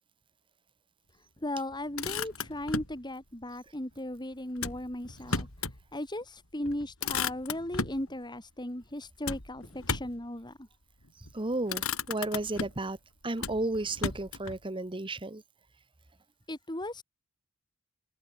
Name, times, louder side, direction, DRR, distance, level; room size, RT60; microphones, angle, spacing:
voice 1, 1.4-5.5 5.9-10.7 16.5-17.0, left 1 dB, 20° left, 3.0 m, -37 dB
Motor vehicle (road), 1.7-3.0 4.6-5.8 6.2-6.3 6.6-8.0 9.2-10.2 11.1-11.3 11.7-12.9 13.4-14.6, left 5 dB, 75° left, 5.8 m, -35 dB
voice 2, 11.3-13.0 13.2-15.4, right 2 dB, 25° right, 1.2 m, -33 dB
head